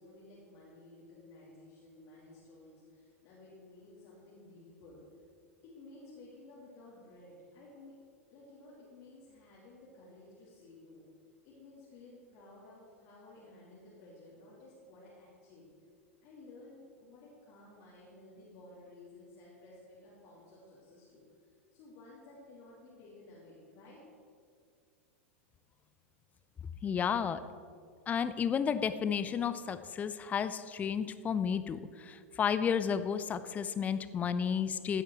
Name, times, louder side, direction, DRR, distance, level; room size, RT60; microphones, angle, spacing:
voice 1, 0.0-5.0 5.6-7.9 8.3-11.0 11.4-15.7 16.2-21.2 21.7-24.0, left 2 dB, 40° left, -6 dB, 2.9 m, -55 dB
voice 2, 26.8-27.4 28.1-35.0, left 7 dB, 20° left, 12 dB, 0.5 m, -32 dB
15.0 x 8.2 x 4.7 m, 2.2 s
figure-of-eight pair, 90°, 7 cm